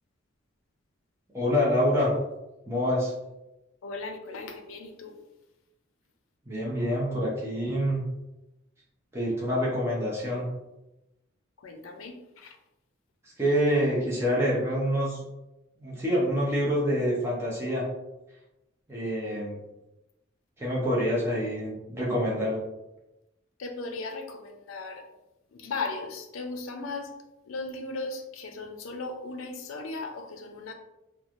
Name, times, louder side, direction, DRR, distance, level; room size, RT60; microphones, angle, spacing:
voice 1, 1.3-2.1 2.7-3.1 6.5-8.0 9.1-10.5 13.2-15.2 15.8-17.9 18.9-19.6 20.6-22.6, equal, 15° right, -6 dB, 0.6 m, -26 dB
voice 2, 3.8-5.2 11.6-12.6 23.6-25.0 25.5-27.1 27.5-30.7, left 3 dB, 85° left, 5 dB, 0.5 m, -37 dB
3.0 x 2.2 x 2.5 m, 0.95 s
head